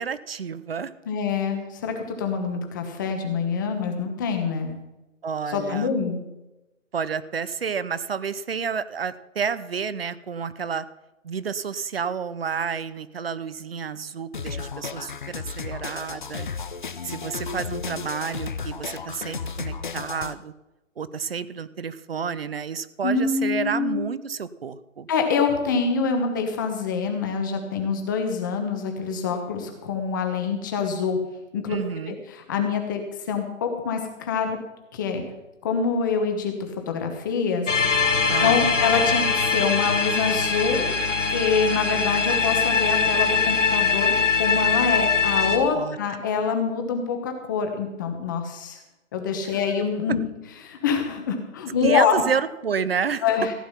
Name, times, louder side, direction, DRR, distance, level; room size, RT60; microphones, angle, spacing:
voice 1, 0.0-0.9 5.2-5.9 6.9-10.9 11.2-16.5 17.0-20.5 21.0-25.1 31.7-32.2 38.3-38.7 45.7-46.0 49.5-49.6 51.8-53.3, right 6 dB, 50° right, 16 dB, 0.7 m, -30 dB
voice 2, 1.1-4.8 5.5-6.2 23.0-24.0 25.1-31.2 31.5-31.8 32.1-33.0 33.3-34.6 34.9-35.2 35.6-36.5 36.9-37.7 38.0-39.3 39.5-40.9 41.3-48.8 49.1-50.2 50.6-52.2 53.2-53.5, left 5 dB, 15° left, 4 dB, 1.2 m, -25 dB
sound 1, 14.3-20.3, left 5 dB, 40° left, 0.7 m, -34 dB
sound 2, 37.7-45.6, left 5 dB, 65° left, 2.6 m, -22 dB
15.5 x 9.4 x 5.7 m, 0.99 s
hypercardioid pair, 165°, 39 cm